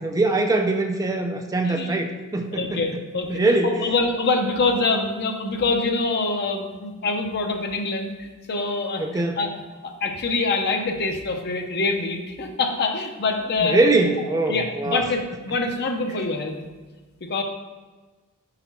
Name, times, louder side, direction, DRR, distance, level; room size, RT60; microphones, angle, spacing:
voice 1, 0.0-3.0 3.3-3.9 9.0-9.4 13.6-15.1, right 2 dB, 15° right, 4 dB, 0.4 m, -22 dB
voice 2, 1.7-2.0 2.5-13.8 14.3-16.6 17.3-17.4, left 3 dB, 50° left, 4 dB, 0.7 m, -25 dB
5.0 x 4.1 x 5.4 m, 1.3 s
head